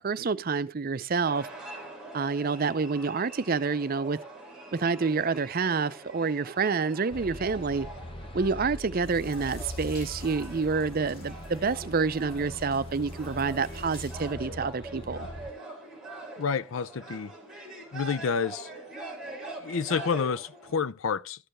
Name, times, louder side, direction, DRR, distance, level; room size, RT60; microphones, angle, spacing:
voice 1, 0.0-1.5 2.1-4.2 4.7-7.9 8.3-15.3, right 4 dB, 45° right, 0.5 m, -28 dB
sound 1, 1.2-20.8, right 2 dB, 5° right, 3.5 m, -44 dB
sound 2, 7.1-15.5, left 1 dB, 25° left, 0.6 m, -41 dB
sound 3, 9.0-14.3, left 2 dB, 45° left, 3.2 m, -54 dB
voice 2, 16.4-17.3 17.9-18.7 19.6-21.5, left 6 dB, 70° left, 0.5 m, -29 dB
13.0 x 6.7 x 3.1 m
head